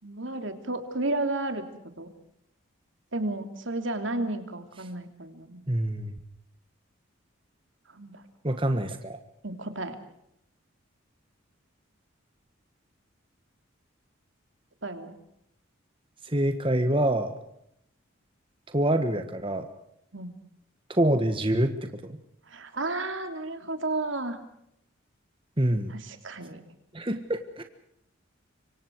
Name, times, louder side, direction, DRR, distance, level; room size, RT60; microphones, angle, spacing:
voice 1, 0.0-1.6 2.0-2.1 3.1-5.6 7.9-8.2 9.4-10.0 14.8-15.1 20.1-20.3 22.5-24.4 25.9-26.6, right 2 dB, 65° right, 8 dB, 3.1 m, -32 dB
voice 2, 5.7-6.2 8.4-9.2 16.2-17.3 18.7-19.7 20.9-22.2 25.6-25.9 26.9-27.6, right 1 dB, 25° right, 7 dB, 1.5 m, -26 dB
26.5 x 24.5 x 4.7 m, 0.75 s
head